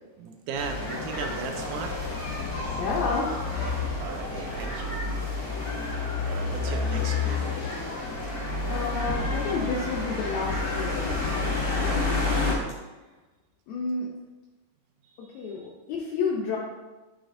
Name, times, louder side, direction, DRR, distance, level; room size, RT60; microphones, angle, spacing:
voice 1, 0.2-1.9 4.0-5.0 6.3-7.6 12.5-12.8 15.3-15.4, right 5 dB, 80° right, 5 dB, 2.0 m, -37 dB
sound 1, 0.5-12.5, left 3 dB, 45° left, 1.6 m, -29 dB
voice 2, 2.6-3.3 6.6-6.7 8.7-11.2 13.7-14.1 15.3-16.6, left 4 dB, 75° left, -2 dB, 1.8 m, -30 dB
7.4 x 5.0 x 2.5 m, 1.2 s
omnidirectional pair, 3.7 m